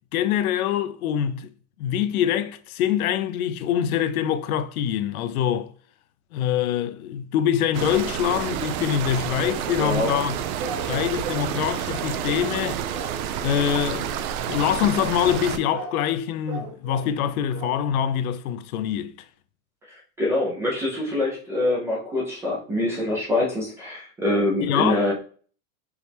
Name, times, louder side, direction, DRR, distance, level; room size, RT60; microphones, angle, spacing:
voice 1, 0.1-1.5 1.8-5.7 6.3-10.4 10.9-12.8 13.4-14.2 14.5-19.3 24.6-25.0, left 9 dB, 90° left, 0.7 m, -24 dB
sound 1, 7.7-15.6, right 10 dB, 85° right, 0.7 m, -29 dB
voice 2, 9.8-10.2 20.2-25.1, left 1 dB, 5° right, 0.3 m, -24 dB
sound 2, 10.6-11.5 11.9-12.6 12.9-13.2 13.6-14.0 15.7-16.0 16.5-17.2 17.5-17.9 18.3-18.4, right 3 dB, 40° right, 0.9 m, -36 dB
4.8 x 3.2 x 3.3 m
supercardioid pair, 165°, 42 cm